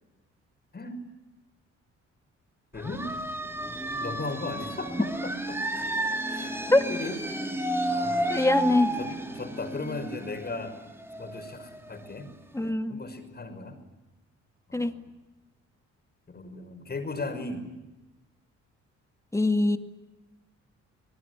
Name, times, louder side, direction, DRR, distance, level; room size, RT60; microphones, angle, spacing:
voice 1, 2.7-3.1 4.0-7.2 7.9-8.2 8.9-10.8 11.2-13.8 14.7-15.1 16.3-17.6, left 3 dB, 35° left, 6 dB, 6.0 m, -37 dB
sound 1, 2.8-12.2, right 1 dB, 10° right, 2.9 m, -32 dB
voice 2, 8.3-8.9 12.5-13.0 14.7-14.9 19.3-19.8, left 2 dB, 10° left, 7 dB, 2.2 m, -23 dB
26.0 x 20.0 x 9.7 m, 1.1 s
cardioid pair, 90°, 30 cm